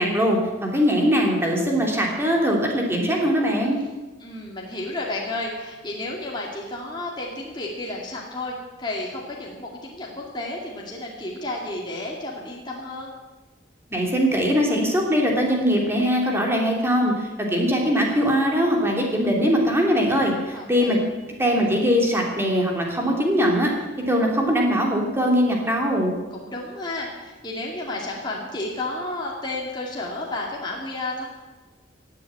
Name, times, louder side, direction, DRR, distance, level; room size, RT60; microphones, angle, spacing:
voice 1, 0.0-3.8 13.9-17.1 17.4-21.0 21.4-23.7 24.1-26.1, equal, 15° right, -1 dB, 3.0 m, -21 dB
voice 2, 4.2-13.1 20.5-21.0 26.3-31.2, left 2 dB, 25° left, -3 dB, 2.4 m, -32 dB
17.5 x 7.7 x 8.9 m, 1.2 s
head